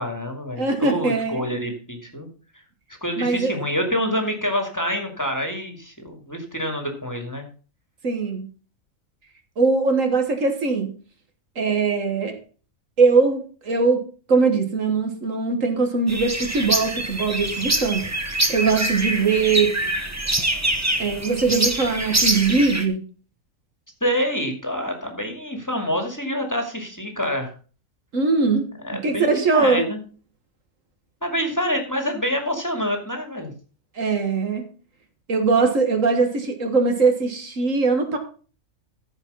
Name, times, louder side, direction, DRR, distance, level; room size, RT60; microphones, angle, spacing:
voice 1, 0.0-2.3 3.0-7.5 24.0-27.5 28.8-30.0 31.2-33.5, equal, 15° left, 4 dB, 2.1 m, -27 dB
voice 2, 0.6-1.5 3.2-3.5 8.0-8.5 9.6-10.9 11.6-12.3 13.0-14.0 14.3-18.0 18.5-19.7 21.0-23.0 28.1-29.9 34.0-34.6 35.3-38.2, right 4 dB, 70° right, 5 dB, 2.0 m, -21 dB
sound 1, 16.1-22.8, right 1 dB, 15° right, 1.0 m, -25 dB
14.5 x 5.2 x 5.4 m, 0.39 s
omnidirectional pair, 1.4 m